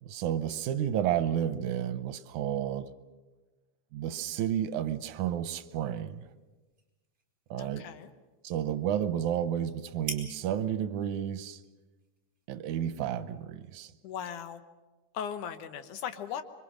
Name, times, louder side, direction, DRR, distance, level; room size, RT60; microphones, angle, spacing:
voice 1, 0.0-2.9 3.9-6.3 7.5-7.9 8.4-11.6 12.5-13.9, right 10 dB, 80° right, 12 dB, 2.3 m, -31 dB
sound 1, 5.7-13.5, right 2 dB, 20° right, 4.0 m, -49 dB
voice 2, 7.6-8.1 14.0-14.6 15.1-16.4, left 8 dB, 85° left, 9 dB, 2.7 m, -38 dB
25.5 x 24.0 x 6.4 m, 1.2 s
omnidirectional pair, 3.4 m